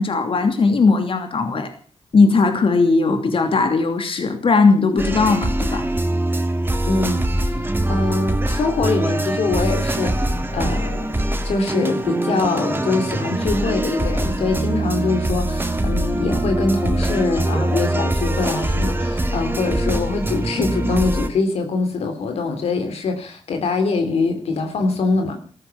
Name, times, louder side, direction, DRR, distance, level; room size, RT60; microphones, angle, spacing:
voice 1, 0.0-1.7 2.1-5.8, left 4 dB, 60° left, 6 dB, 2.8 m, -18 dB
sound 1, 5.0-21.3, right 1 dB, 20° right, 2.2 m, -23 dB
voice 2, 6.8-11.1 11.4-25.4, left 3 dB, 85° left, 6 dB, 3.1 m, -23 dB
14.0 x 14.0 x 7.1 m, 0.42 s
cardioid pair, 60°, 10 cm